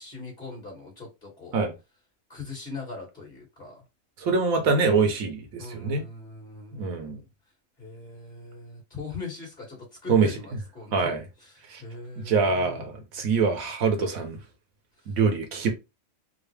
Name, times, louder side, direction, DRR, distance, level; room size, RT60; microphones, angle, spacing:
voice 1, 0.0-1.6 2.3-3.8 5.6-7.1 7.8-11.1 11.4-12.8, left 4 dB, 35° left, 1.7 m, -41 dB
voice 2, 4.2-6.0 6.7-7.2 10.1-10.4 10.9-11.2 11.7-11.8 12.3-14.4 15.1-15.7, right 4 dB, 80° right, 1.3 m, -24 dB
3.8 x 2.0 x 3.3 m
omnidirectional pair, 1.5 m